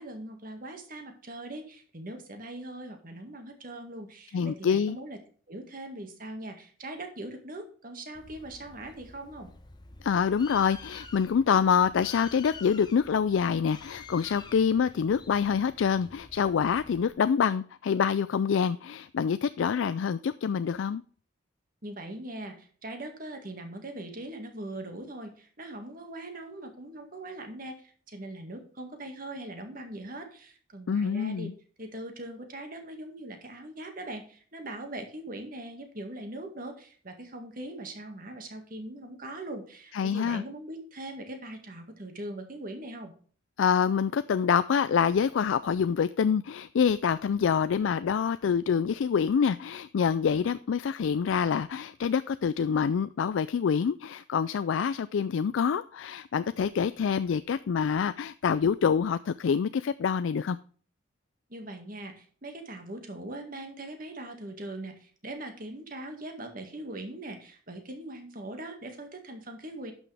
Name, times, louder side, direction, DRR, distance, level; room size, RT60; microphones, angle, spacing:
voice 1, 0.0-5.2 5.5-9.5 21.8-31.5 31.8-43.1 61.5-69.9, right 1 dB, 45° right, 1.9 m, -41 dB
voice 2, 4.3-5.0 10.0-21.0 30.9-31.5 39.9-40.4 43.6-60.6, left 7 dB, 75° left, 0.3 m, -26 dB
Bird, 8.1-17.1, left 4 dB, 20° left, 0.8 m, -49 dB
11.0 x 6.2 x 3.4 m
head